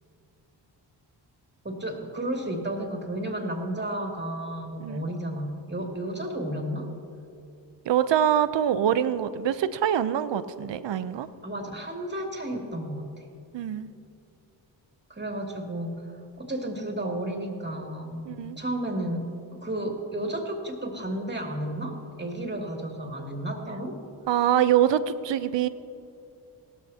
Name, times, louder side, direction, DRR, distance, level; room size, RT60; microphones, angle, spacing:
voice 1, 1.6-6.9 11.4-13.2 15.1-16.0 16.4-19.2 19.5-24.0, right 1 dB, 20° right, 1 dB, 2.6 m, -32 dB
voice 2, 7.9-11.3 13.5-13.9 18.3-18.6 24.3-25.7, right 10 dB, 65° right, 13 dB, 0.7 m, -24 dB
17.0 x 13.0 x 2.8 m, 2.7 s
supercardioid pair, 50°, 47 cm